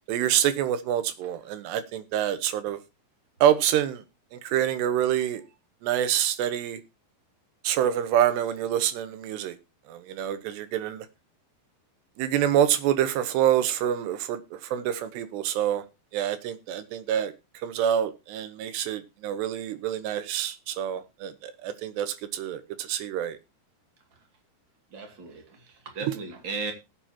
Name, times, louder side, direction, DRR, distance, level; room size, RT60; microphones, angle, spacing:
voice 1, 0.1-2.8 3.4-4.0 4.3-5.4 5.8-6.8 7.6-9.5 9.9-11.1 12.2-15.8 16.1-17.3 17.6-23.4, right 10 dB, 85° right, 3.2 m, -26 dB
voice 2, 24.9-26.7, right 4 dB, 35° right, 2.4 m, -36 dB
19.5 x 8.0 x 2.9 m
omnidirectional pair, 4.8 m